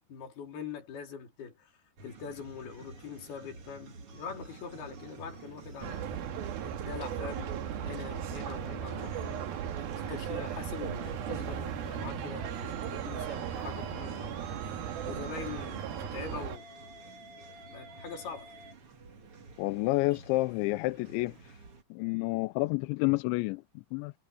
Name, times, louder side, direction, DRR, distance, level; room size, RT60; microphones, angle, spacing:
voice 1, 0.1-1.7 2.0-6.1 6.6-9.5 10.1-14.4 15.1-16.7 17.7-18.5, left 6 dB, 60° left, 5.3 m, -43 dB
sound 1, 2.0-21.8, right 3 dB, 40° right, 2.6 m, -51 dB
sound 2, 5.8-16.6, right 9 dB, 65° right, 3.2 m, -37 dB
Musical instrument, 12.5-18.7, right 5 dB, 85° right, 6.5 m, -50 dB
voice 2, 19.6-21.4 21.9-24.1, left 22 dB, 90° left, 3.0 m, -29 dB
omnidirectional pair, 5.1 m